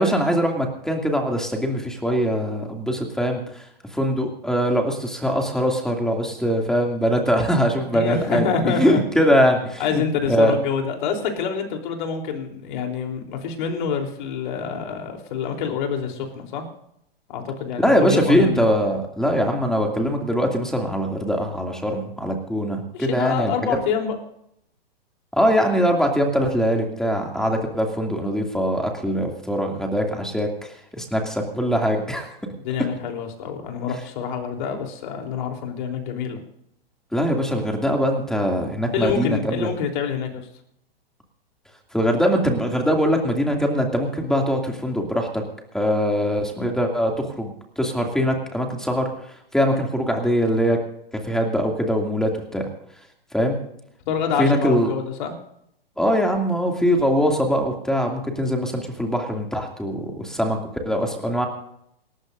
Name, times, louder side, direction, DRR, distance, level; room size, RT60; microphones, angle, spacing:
voice 1, 0.0-3.4 3.9-10.0 10.3-10.5 17.8-23.5 25.3-32.3 37.1-39.7 41.9-45.4 45.7-47.5 47.8-49.1 49.5-50.8 51.1-52.6 53.3-53.6 54.4-54.9 56.0-60.6 60.8-61.5, equal, ahead, 2 dB, 2.6 m, -22 dB
voice 2, 7.9-9.3 9.8-16.6 17.3-18.7 22.9-24.2 32.6-36.4 38.9-40.5 54.1-55.3, left 6 dB, 50° left, 3 dB, 3.7 m, -26 dB
27.5 x 13.5 x 2.7 m, 0.74 s
hypercardioid pair, 125°, 30 cm